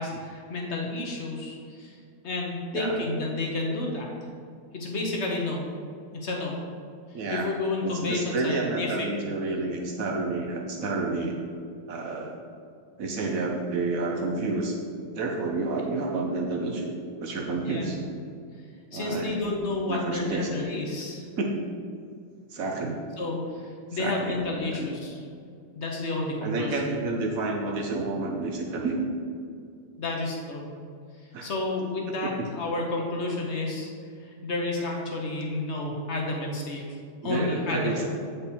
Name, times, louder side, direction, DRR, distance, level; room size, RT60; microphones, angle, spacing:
voice 1, 0.0-2.0 2.2-4.1 4.7-5.7 6.1-6.6 7.3-9.1 17.7-18.1 18.9-21.3 23.2-25.2 25.8-26.8 30.0-30.7 31.2-33.9 34.2-37.0 37.2-38.1, left 2 dB, 55° left, 0 dB, 0.7 m, -31 dB
voice 2, 7.1-7.5 7.8-11.4 11.9-12.4 13.0-14.8 15.1-16.9 17.2-18.0 18.9-19.4 19.9-20.5 21.4-21.5 22.5-23.0 24.0-24.9 26.4-29.1 31.3-31.5 32.4-32.5 37.2-38.1, right 3 dB, 85° right, 1 dB, 0.7 m, -30 dB
8.4 x 5.3 x 4.2 m, 2.3 s
omnidirectional pair, 2.4 m